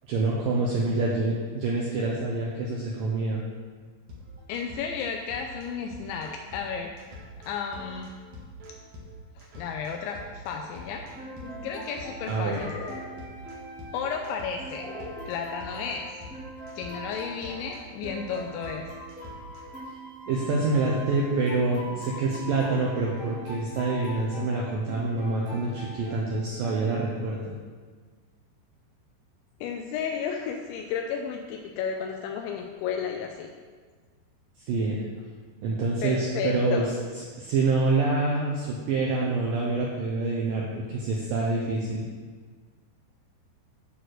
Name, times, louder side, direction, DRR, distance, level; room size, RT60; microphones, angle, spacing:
voice 1, 0.1-3.4 12.3-12.6 20.3-27.5 34.7-35.0 35.6-36.9 37.4-42.0, right 3 dB, 85° right, -3 dB, 2.0 m, -26 dB
sound 1, 4.1-19.8, left 1 dB, 55° right, 2.1 m, -46 dB
voice 2, 4.5-7.1 7.5-8.1 9.4-11.0 11.6-12.8 13.9-15.0 15.3-16.2 16.8-18.9 29.6-33.5 36.0-36.9, left 6 dB, 85° left, 3 dB, 2.9 m, -33 dB
sound 2, 10.7-26.9, equal, 10° right, 0.4 m, -42 dB
sound 3, 10.9-11.7 12.4-13.3 14.8-15.3, left 3 dB, 60° left, 3.0 m, -41 dB
9.2 x 4.4 x 6.4 m, 1.5 s
omnidirectional pair, 5.2 m